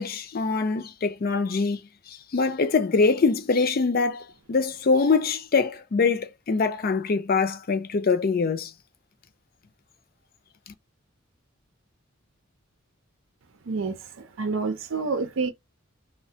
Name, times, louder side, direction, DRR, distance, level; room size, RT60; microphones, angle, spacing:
voice 1, 0.0-1.8 2.1-8.7, left 4 dB, 45° left, 0.5 m, -24 dB
voice 2, 13.6-15.5, right 4 dB, 70° right, 0.6 m, -28 dB
3.2 x 2.1 x 2.7 m
head